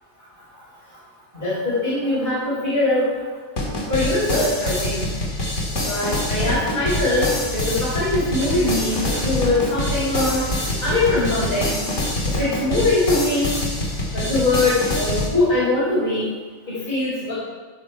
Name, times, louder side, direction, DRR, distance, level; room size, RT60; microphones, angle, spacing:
voice 1, 1.3-3.1 3.9-5.1 5.8-10.4 10.8-11.9 12.3-13.5 14.1-16.3 16.7-17.3, left 2 dB, 45° left, -10 dB, 5.3 m, -22 dB
sound 1, 3.6-15.3, left 1 dB, 75° left, 2.6 m, -25 dB
sound 2, 6.3-11.8, right 3 dB, 35° right, 1.4 m, -34 dB
15.5 x 10.5 x 4.6 m, 1.4 s
omnidirectional pair, 1.3 m